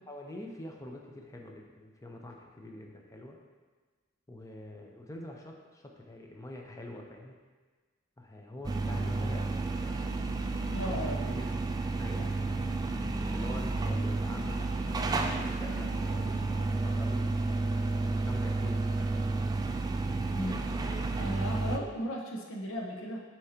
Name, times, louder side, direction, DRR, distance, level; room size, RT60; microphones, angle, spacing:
voice 1, 0.1-3.4 4.3-7.3 8.2-10.2 10.8-11.4 12.0-12.6 13.2-17.4 18.1-18.8 21.4-21.6, left 1 dB, 15° left, 1 dB, 0.7 m, -45 dB
sound 1, 8.6-21.8, right 3 dB, 20° right, 0.3 m, -31 dB
voice 2, 10.7-11.2 20.3-20.6 21.2-23.2, equal, 70° left, -1 dB, 0.8 m, -35 dB
8.5 x 4.5 x 2.9 m, 1.4 s
head